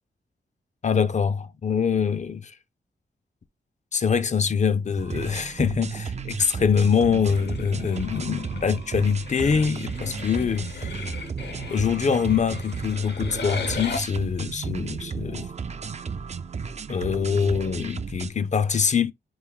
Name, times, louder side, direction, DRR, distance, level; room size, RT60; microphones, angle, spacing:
voice 1, 0.8-2.5 3.9-11.0 11.7-15.5 16.9-19.1, left 6 dB, 40° left, 0.5 m, -24 dB
sound 1, 5.0-18.3, right 5 dB, 40° right, 0.4 m, -34 dB
sound 2, 7.3-14.0, left 4 dB, 70° left, 0.9 m, -37 dB
4.8 x 2.5 x 3.6 m
wide cardioid pair, 135°, 18 cm